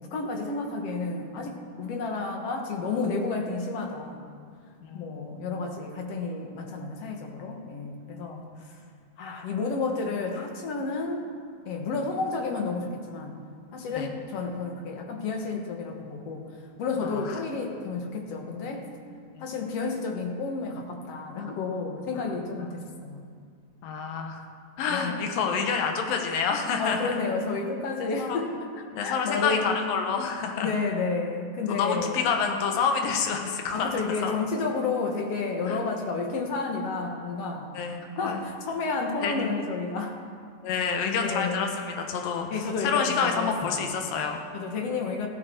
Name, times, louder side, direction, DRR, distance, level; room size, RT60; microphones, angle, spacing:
voice 1, 0.0-4.3 4.9-8.8 9.2-11.3 11.7-13.4 13.7-18.9 19.4-23.3 24.9-25.3 26.8-28.7 29.0-29.7 30.6-32.3 33.7-37.7 38.2-40.2 40.7-40.9 41.2-41.6 42.5-44.0 44.5-45.3, left 4 dB, 55° left, 2 dB, 2.0 m, -31 dB
voice 2, 4.8-5.6 8.1-8.4 13.9-14.1 17.0-17.4 19.3-19.4 22.2-22.4 23.8-24.4 24.8-27.2 28.2-28.4 28.9-30.8 31.7-33.9 34.2-34.3 35.7-35.9 37.7-38.4 39.2-39.5 40.6-44.4, left 6 dB, 80° left, 3 dB, 2.9 m, -28 dB
16.0 x 13.5 x 4.6 m, 2.2 s
omnidirectional pair, 4.1 m